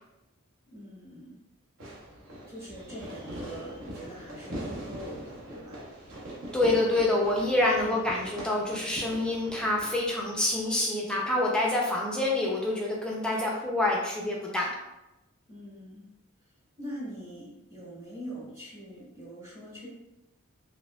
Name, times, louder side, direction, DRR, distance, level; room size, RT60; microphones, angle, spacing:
voice 1, 0.7-1.4 2.5-5.8 7.8-8.4 15.5-16.1 16.8-19.9, equal, 10° right, -8 dB, 1.1 m, -43 dB
Fireworks, 1.8-10.8, right 1 dB, 65° right, 0.9 m, -42 dB
voice 2, 6.5-14.8, left 2 dB, 5° left, -3 dB, 0.4 m, -27 dB
4.7 x 2.1 x 2.2 m, 0.95 s
head